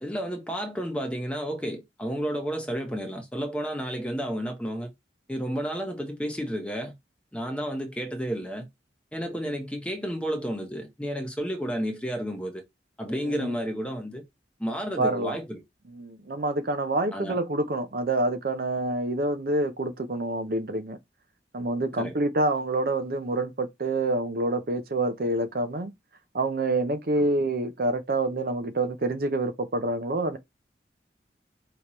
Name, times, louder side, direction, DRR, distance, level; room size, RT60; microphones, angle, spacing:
voice 1, 0.0-4.9 5.3-6.9 7.3-8.7 9.1-12.6 13.0-14.2 14.6-15.6 17.1-17.4 22.0-22.2, equal, 5° left, 0.9 m, -31 dB
voice 2, 13.1-13.6 15.0-15.4 15.9-21.0 21.5-25.9 26.3-30.4, right 2 dB, 55° right, 0.6 m, -27 dB
5.1 x 2.9 x 3.0 m
head